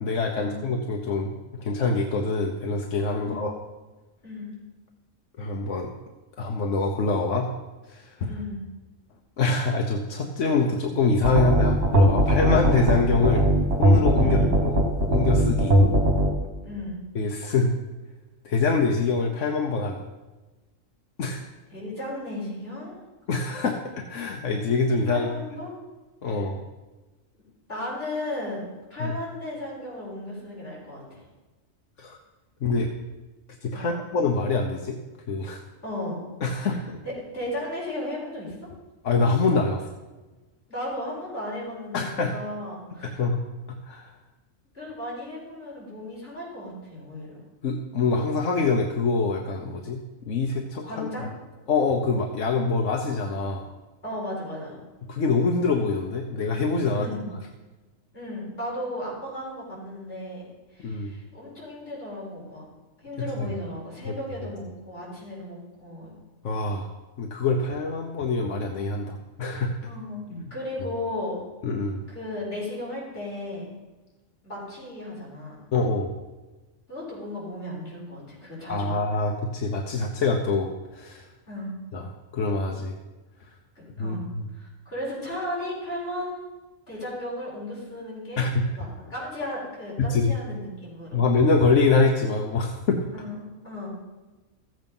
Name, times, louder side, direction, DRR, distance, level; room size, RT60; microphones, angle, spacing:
voice 1, 0.0-3.5 5.4-5.9 6.4-7.5 7.9-8.3 9.4-13.5 13.8-14.8 15.1-15.7 17.1-17.7 18.4-20.0 21.2-21.4 23.3-25.3 26.2-26.6 29.0-29.1 32.0-32.2 32.6-32.9 33.6-35.0 35.3-35.6 36.4-37.0 39.0-39.9 41.9-42.3 43.2-43.4 43.9-44.1 47.6-51.1 51.7-53.7 55.1-57.1 60.8-61.1 64.1-64.2 66.4-66.9 67.2-69.7 70.3-70.4 71.6-72.0 75.7-76.1 78.7-81.3 81.9-82.9 83.5-83.6 84.0-84.4 88.4-88.6 90.0-90.3 91.1-93.0, left 3 dB, 70° left, 2 dB, 1.3 m, -25 dB
voice 2, 3.2-3.5 4.2-4.5 8.3-8.6 14.2-14.5 16.6-17.0 21.7-23.0 25.1-25.7 26.2-26.5 27.7-28.7 28.9-31.3 33.7-34.0 35.8-36.7 37.0-38.6 40.7-43.2 44.7-47.4 50.8-51.3 54.0-54.8 56.9-57.3 58.1-60.4 60.7-62.6 63.0-66.1 69.8-71.4 72.1-73.7 74.4-75.6 76.9-79.1 81.5-81.7 83.8-84.3 84.5-86.5 86.9-91.2 93.1-93.9, left 1 dB, 50° left, -6 dB, 5.5 m, -35 dB
sound 1, 11.2-16.3, right 1 dB, 50° right, 2.4 m, -19 dB
14.0 x 8.0 x 5.5 m, 1.2 s
omnidirectional pair, 1.3 m